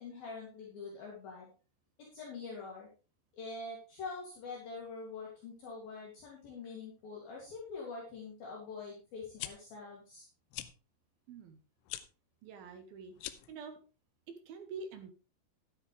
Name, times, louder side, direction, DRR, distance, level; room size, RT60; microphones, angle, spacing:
voice 1, 0.0-1.5 2.0-2.9 3.3-10.3, left 4 dB, 60° left, -3 dB, 4.2 m, -45 dB
sound 1, 9.2-9.5 10.5-10.7 11.8-12.0 13.1-13.5, left 14 dB, 80° left, 2.8 m, -42 dB
voice 2, 11.3-11.6 12.4-13.8 14.3-15.1, right 4 dB, 70° right, 7 dB, 2.6 m, -47 dB
12.5 x 10.5 x 3.3 m, 0.34 s
omnidirectional pair, 5.2 m